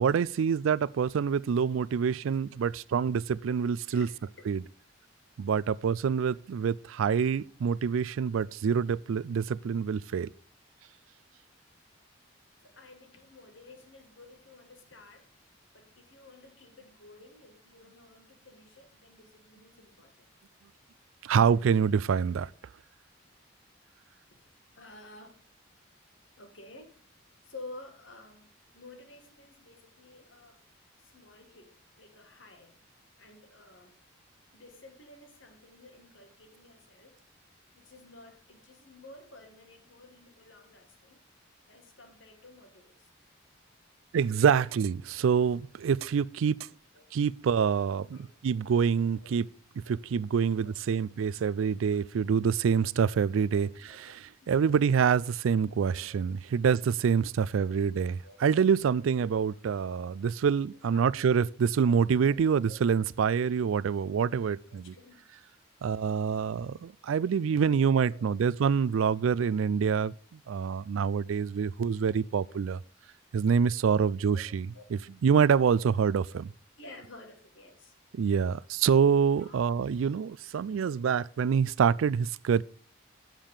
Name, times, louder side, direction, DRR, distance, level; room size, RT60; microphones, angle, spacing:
voice 1, 0.0-4.1 4.5-4.6 5.4-10.3 21.2-22.5 44.1-46.6 47.1-48.2 48.4-49.5 49.9-53.7 54.5-64.9 65.8-70.1 70.5-72.8 73.3-76.5 78.1-82.6, right 6 dB, 75° right, 0.3 m, -26 dB
voice 2, 3.9-4.5 5.4-5.5 12.6-15.4 15.7-20.3 24.3-24.4 24.7-25.4 26.4-27.0 27.4-30.6 31.0-32.8 33.2-34.0 34.5-37.2 37.7-41.2 41.7-43.1 46.9-47.1 48.1-48.3 49.2-49.5 49.8-50.0 50.4-50.9 53.5-53.6 53.9-54.1 56.0-56.2 57.5-57.8 58.2-58.4 60.9-61.2 62.3-62.8 64.7-65.2 67.6-68.3 69.2-69.5 74.3-74.9 75.8-75.9 76.8-77.9 79.4-79.6, left 2 dB, 65° left, 1.7 m, -52 dB
9.0 x 7.5 x 4.9 m
head